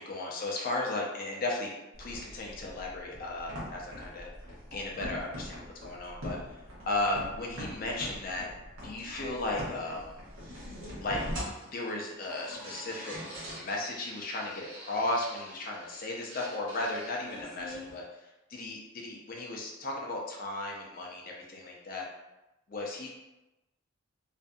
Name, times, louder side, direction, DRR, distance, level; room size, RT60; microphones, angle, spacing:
voice 1, 0.0-1.7 2.0-4.3 4.7-5.3 5.5-6.4 6.9-8.5 8.8-10.2 11.0-11.2 11.7-13.2 13.5-22.1 22.7-23.1, left 2 dB, 45° left, -1 dB, 0.4 m, -35 dB
sound 1, 1.9-17.9, equal, 75° right, 0.9 m, -43 dB
2.5 x 2.5 x 2.2 m, 0.99 s
head